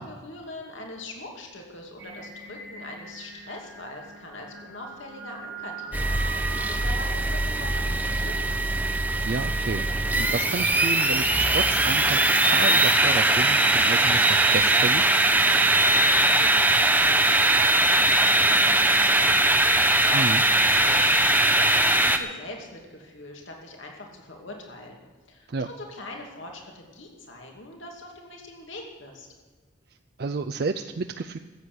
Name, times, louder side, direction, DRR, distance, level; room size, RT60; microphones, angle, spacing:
voice 1, 0.0-8.7 15.6-29.3, left 2 dB, 80° left, 1 dB, 2.6 m, -42 dB
Singing, 2.0-20.9, right 2 dB, 85° right, 3.5 m, -42 dB
sound 1, 5.9-22.2, right 2 dB, 10° right, 0.7 m, -21 dB
voice 2, 9.2-15.0 20.1-20.4 25.5-25.7 30.2-31.4, right 3 dB, 50° right, 6 dB, 0.4 m, -31 dB
14.5 x 8.2 x 8.5 m, 1.4 s
head